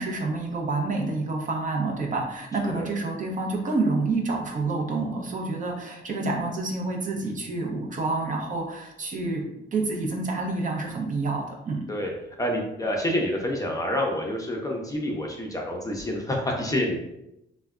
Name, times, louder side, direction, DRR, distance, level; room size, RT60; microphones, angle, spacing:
voice 1, 0.0-9.4 9.7-11.8, right 3 dB, 40° right, 0 dB, 0.6 m, -28 dB
voice 2, 12.4-17.0, left 1 dB, 15° left, -1 dB, 0.5 m, -28 dB
3.2 x 2.1 x 2.3 m, 0.86 s
cardioid pair, 90°, 20 cm